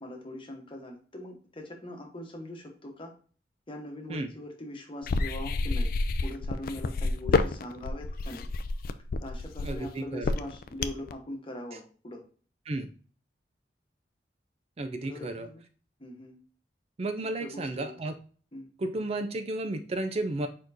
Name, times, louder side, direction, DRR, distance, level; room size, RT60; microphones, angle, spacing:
voice 1, 0.0-3.1 3.7-5.9 6.2-8.5 9.2-12.2 15.1-15.6 16.0-16.3 17.4-17.9 18.5-18.7, left 1 dB, 30° left, 2 dB, 1.1 m, -41 dB
sound 1, 5.0-11.1, left 3 dB, 55° left, 0.4 m, -29 dB
voice 2, 9.6-10.3 12.7-12.9 14.8-15.5 17.0-18.1 18.8-20.5, right 2 dB, 35° right, 8 dB, 0.4 m, -33 dB
4.6 x 4.3 x 2.6 m, 0.42 s
head